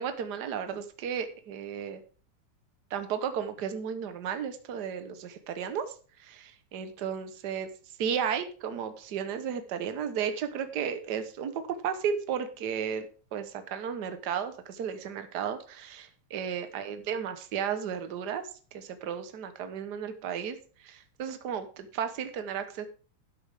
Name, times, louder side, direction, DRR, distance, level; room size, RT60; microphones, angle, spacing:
voice 1, 0.0-2.0 2.9-5.9 6.2-7.7 8.0-13.1 13.3-18.5 18.7-22.9, right 7 dB, 65° right, 9 dB, 1.0 m, -34 dB
12.5 x 8.2 x 3.6 m, 0.39 s
omnidirectional pair, 3.3 m